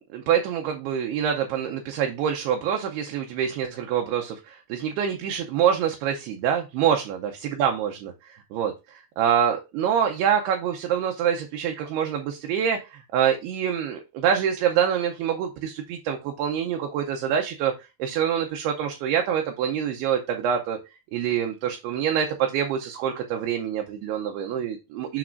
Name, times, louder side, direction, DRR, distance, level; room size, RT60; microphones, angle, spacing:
voice 1, 0.1-7.2 7.6-8.1 8.5-17.7 18.0-20.8 21.1-25.2, right 8 dB, 80° right, 4 dB, 2.5 m, -25 dB
12.0 x 4.2 x 2.5 m, 0.26 s
omnidirectional pair, 5.0 m